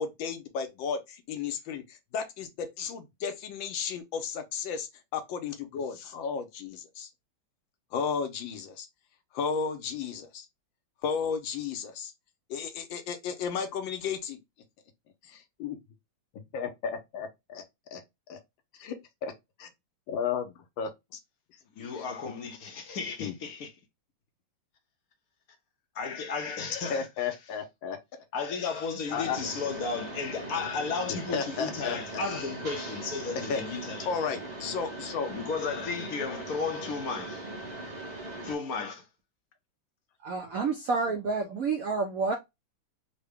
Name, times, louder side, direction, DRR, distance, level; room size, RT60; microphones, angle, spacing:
voice 1, 0.0-7.1 7.9-8.9 9.3-10.5 11.0-12.1 12.5-14.4 15.2-15.8 16.5-17.6 17.9-18.0 18.3-18.4 18.7-19.3 19.6-19.7 20.1-21.2 22.0-22.1 23.2-23.3 26.9-28.0 29.1-29.4 31.1-32.2 33.5-33.6 34.1-35.3, left 6 dB, 85° left, 1.5 m, -34 dB
voice 2, 21.8-23.7 25.9-27.1 28.3-34.1 35.3-37.5 38.4-39.0, left 5 dB, 65° left, 0.9 m, -34 dB
Mechanisms, 29.1-38.6, right 2 dB, 40° right, 0.6 m, -40 dB
voice 3, 40.2-42.3, right 4 dB, 70° right, 0.8 m, -29 dB
3.8 x 2.2 x 3.3 m
omnidirectional pair, 2.1 m